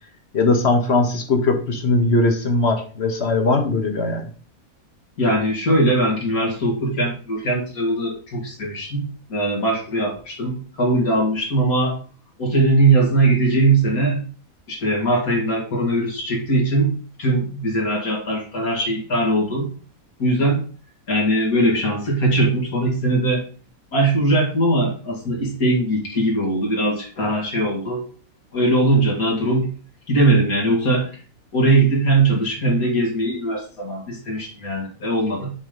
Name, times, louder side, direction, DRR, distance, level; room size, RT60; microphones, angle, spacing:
voice 1, 0.3-4.3, left 2 dB, 50° left, 4 dB, 1.3 m, -19 dB
voice 2, 5.2-12.0 12.4-14.2 14.7-19.7 20.2-20.6 21.1-23.4 23.9-28.0 28.5-29.7 30.1-31.1 31.5-35.5, right 2 dB, 85° left, -2 dB, 2.4 m, -20 dB
7.1 x 3.8 x 5.1 m, 0.40 s
omnidirectional pair, 1.5 m